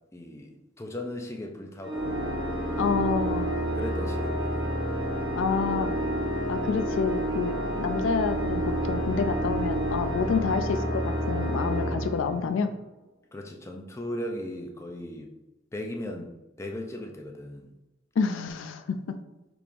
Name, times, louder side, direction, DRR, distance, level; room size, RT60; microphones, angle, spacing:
voice 1, 0.1-2.2 3.8-4.7 13.3-15.3 15.7-16.3 16.6-17.7, left 1 dB, 15° left, 2 dB, 0.4 m, -37 dB
Organ, 1.8-12.8, equal, 25° right, 0.9 m, -29 dB
voice 2, 2.8-3.5 5.4-5.9 6.5-12.7 18.2-19.2, left 5 dB, 80° left, 9 dB, 0.4 m, -28 dB
4.6 x 3.5 x 2.5 m, 0.99 s
head